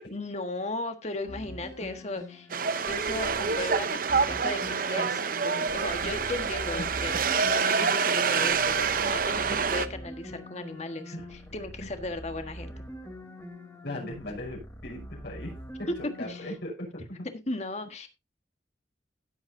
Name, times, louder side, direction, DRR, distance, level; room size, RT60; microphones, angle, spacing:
voice 1, 0.1-2.5 2.9-7.1 7.5-12.7 16.3-16.5 17.5-18.1, left 2 dB, 40° left, 7 dB, 1.5 m, -36 dB
sound 1, 1.2-16.6, equal, 15° left, 2.9 m, -43 dB
sound 2, 2.5-9.9, right 5 dB, 50° right, 0.7 m, -27 dB
voice 2, 13.8-15.9 16.2-17.3, left 1 dB, 65° left, -2 dB, 6.0 m, -38 dB
16.5 x 8.2 x 2.7 m, 0.24 s
head